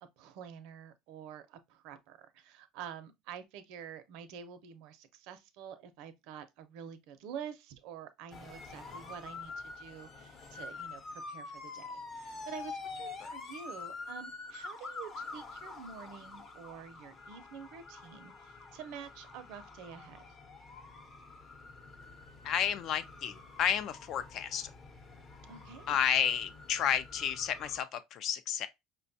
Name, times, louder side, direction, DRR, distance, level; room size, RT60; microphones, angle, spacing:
voice 1, 0.2-20.2 25.4-26.0, right 8 dB, 75° right, 0.6 m, -48 dB
sound 1, 8.3-27.8, left 3 dB, 35° left, 0.8 m, -47 dB
voice 2, 22.4-24.7 25.9-28.7, left 9 dB, 55° left, 0.5 m, -31 dB
5.0 x 2.2 x 2.6 m
cardioid pair, 120°, 0 cm